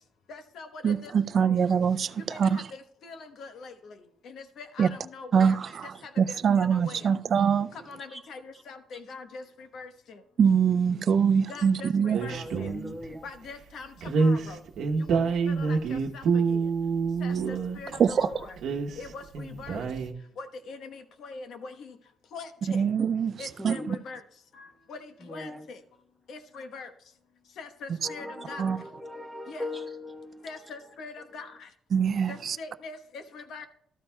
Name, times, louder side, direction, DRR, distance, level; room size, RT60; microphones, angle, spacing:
voice 1, 0.3-1.5 2.3-4.0 4.2-7.2 7.7-10.2 11.5-12.7 13.2-14.6 15.0-16.6 17.2-18.6 19.0-19.9 20.4-22.0 22.3-22.8 23.4-24.2 24.5-25.8 26.3-26.9 27.6-28.7 29.5-29.6 30.4-31.7 32.3-33.7, left 4 dB, 70° left, 1.1 m, -43 dB
voice 2, 0.8-2.1 2.4-2.6 4.8-4.9 5.3-5.8 6.2-7.7 10.4-12.2 18.0-18.3 22.7-23.3 23.6-23.8 28.6-28.8 31.9-32.6, right 7 dB, 55° right, 0.4 m, -23 dB
voice 3, 5.4-5.7 8.1-8.2 12.3-13.3 23.6-23.9 25.2-25.6 28.0-30.7, left 1 dB, ahead, 1.1 m, -39 dB
sound 1, 12.1-13.1 14.0-18.0 18.5-20.1, right 5 dB, 75° right, 0.9 m, -27 dB
13.0 x 13.0 x 2.3 m
cardioid pair, 90°, 0 cm